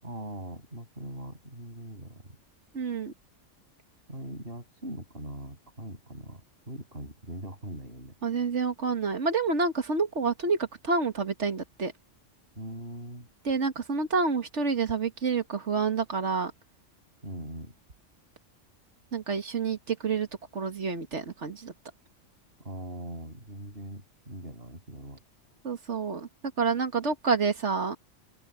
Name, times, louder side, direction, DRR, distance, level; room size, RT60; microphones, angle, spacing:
voice 1, 0.0-2.4 4.1-6.4 6.7-8.1 12.6-13.3 17.2-17.7 22.6-25.2, right 1 dB, 50° right, 7.2 m, -41 dB
voice 2, 2.7-3.1 8.2-11.9 13.4-16.5 19.1-20.3 20.5-21.7 25.6-26.3 26.6-28.0, right 4 dB, 65° right, 2.0 m, -28 dB
open air
omnidirectional pair, 1.3 m